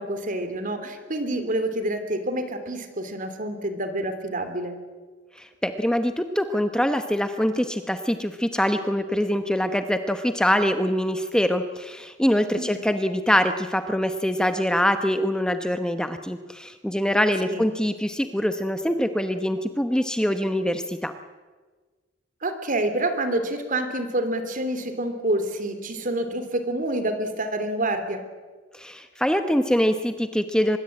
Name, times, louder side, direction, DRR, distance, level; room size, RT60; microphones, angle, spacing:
voice 1, 0.0-4.8 12.5-12.8 17.5-17.7 22.4-28.2, right 1 dB, 45° right, 9 dB, 3.3 m, -27 dB
voice 2, 5.4-21.1 28.7-30.8, equal, 5° left, 8 dB, 0.9 m, -24 dB
24.0 x 21.5 x 8.6 m, 1.4 s
head